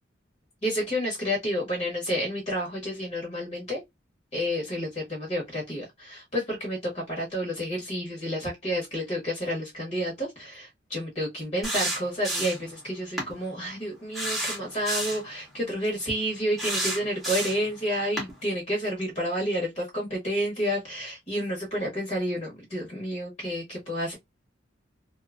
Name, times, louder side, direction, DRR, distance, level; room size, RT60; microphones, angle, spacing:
voice 1, 0.6-3.8 4.3-24.2, equal, 35° left, 1.1 m, -30 dB
sound 1, 11.6-12.7 13.2-13.3 14.1-15.3 16.6-17.7 18.2-18.3, right 1 dB, ahead, 0.9 m, -30 dB
2.7 x 2.3 x 2.4 m
head